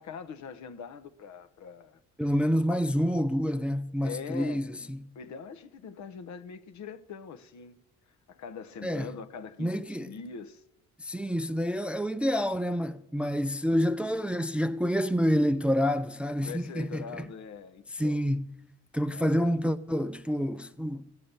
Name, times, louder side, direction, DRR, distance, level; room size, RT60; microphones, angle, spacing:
voice 1, 0.0-2.0 4.0-4.8 5.1-7.7 8.3-10.6 16.4-18.2 19.1-19.4, left 6 dB, 65° left, 0.9 m, -42 dB
voice 2, 2.2-5.0 8.8-9.1 9.6-10.1 11.0-17.3 17.9-18.5 18.9-21.1, equal, 5° right, 0.4 m, -28 dB
15.0 x 8.5 x 6.8 m
cardioid pair, 90°, 30 cm